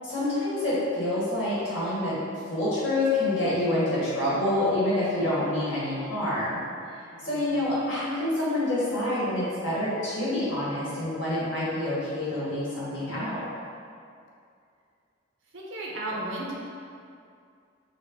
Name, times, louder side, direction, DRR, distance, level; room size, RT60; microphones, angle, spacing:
voice 1, 0.0-2.2 2.5-6.6 7.2-13.4, left 1 dB, 70° left, -9 dB, 1.4 m, -27 dB
voice 2, 7.1-7.5 15.5-16.5, right 1 dB, 70° right, -4 dB, 0.7 m, -34 dB
4.2 x 2.1 x 3.5 m, 2.3 s
head